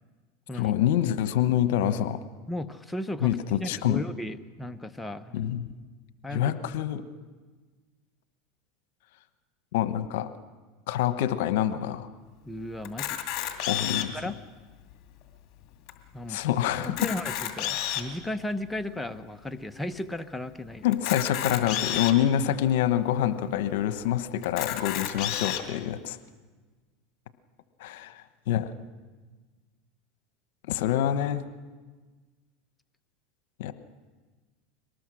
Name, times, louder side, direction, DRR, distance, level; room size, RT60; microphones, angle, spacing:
voice 1, 0.5-2.2 3.2-4.0 5.3-5.7 6.3-7.0 9.7-10.3 10.9-12.1 13.7-14.2 16.3-17.1 20.8-26.2 27.8-28.7 30.7-31.4 33.6-33.7, left 11 dB, 75° left, 11 dB, 1.0 m, -26 dB
voice 2, 2.5-3.3 3.6-5.4 6.2-6.5 12.4-13.2 14.1-14.4 16.1-16.4 16.8-20.8, left 1 dB, 5° left, 8 dB, 0.9 m, -35 dB
Camera, 12.8-14.2 14.9-15.0 15.2-15.3 15.9-16.0 16.8-18.2 18.8-18.9 20.9-22.1 22.9-23.0 23.2-23.3 24.4-25.6, left 12 dB, 50° left, 2.4 m, -31 dB
23.0 x 19.5 x 6.3 m, 1.4 s
supercardioid pair, 110°, 0 cm